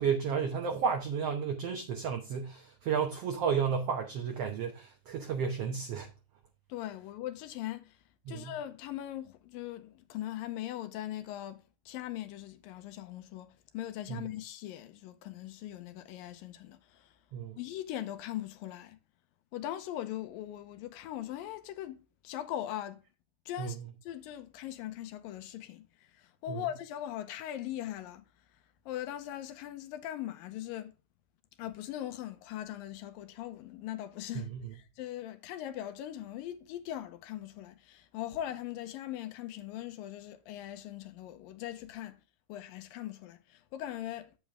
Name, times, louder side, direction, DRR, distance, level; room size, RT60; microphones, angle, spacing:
voice 1, 0.0-6.1 8.3-8.5 14.1-14.2 17.3-17.6 23.6-23.7 26.5-26.6 34.3-34.7, right 6 dB, 70° right, 1.4 m, -32 dB
voice 2, 6.7-17.2 17.6-19.0 19.5-23.0 23.5-28.2 28.9-31.0 31.6-42.2 42.5-44.4, left 12 dB, 85° left, 2.4 m, -40 dB
8.3 x 7.2 x 3.6 m
omnidirectional pair, 4.1 m